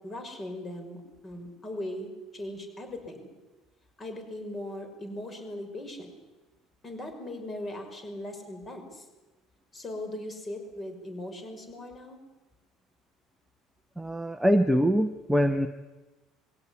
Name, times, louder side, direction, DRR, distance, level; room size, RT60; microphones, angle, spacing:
voice 1, 0.0-3.3 4.0-6.1 6.8-9.0 9.7-12.2, left 1 dB, 25° left, 6 dB, 5.8 m, -39 dB
voice 2, 14.0-15.7, equal, 5° right, 7 dB, 1.0 m, -24 dB
22.0 x 17.0 x 9.8 m, 1.1 s
cardioid pair, 125°, 0 cm